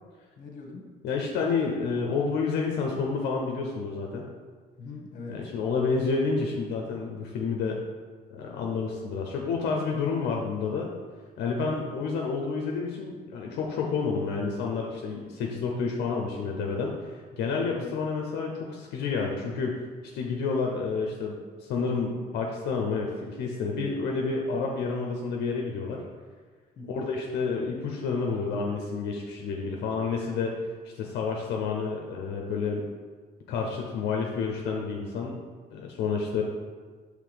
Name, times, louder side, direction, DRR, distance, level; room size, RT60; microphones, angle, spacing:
voice 1, 0.4-0.9 4.8-5.4 11.5-11.9 17.7-17.9 26.8-27.0, left 3 dB, 50° left, 1 dB, 1.2 m, -41 dB
voice 2, 1.0-4.2 5.3-7.8 8.3-10.9 11.4-19.8 20.1-26.0 26.9-30.6 30.8-32.8 33.5-35.4 35.7-36.4, left 4 dB, 80° left, 0 dB, 0.7 m, -29 dB
5.8 x 3.3 x 5.1 m, 1.5 s
cardioid pair, 110°, 17 cm